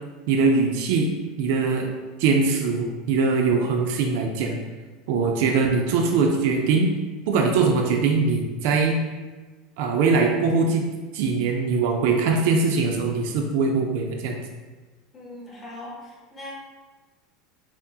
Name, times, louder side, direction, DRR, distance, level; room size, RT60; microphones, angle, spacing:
voice 1, 0.3-1.1 1.4-1.9 2.2-4.6 5.1-6.9 7.3-9.0 9.8-10.8 11.1-14.4, right 4 dB, 60° right, 2 dB, 0.4 m, -22 dB
voice 2, 15.1-16.5, left 1 dB, 15° left, -5 dB, 0.8 m, -40 dB
5.8 x 2.1 x 2.7 m, 1.3 s
supercardioid pair, 165°, 0 cm